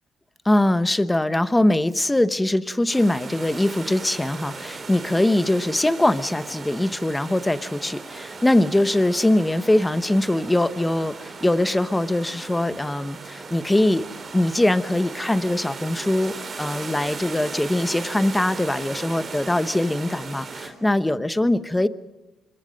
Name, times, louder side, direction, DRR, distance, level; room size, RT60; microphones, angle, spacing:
voice 1, 0.4-14.1 14.3-21.9, left 1 dB, 10° left, 13 dB, 0.9 m, -22 dB
sound 1, 2.9-20.7, right 4 dB, 40° right, 4.0 m, -37 dB
sound 2, 6.3-15.3, right 5 dB, 65° right, 7.4 m, -51 dB
25.5 x 22.5 x 5.3 m, 1.1 s
cardioid pair, 90°, 0 cm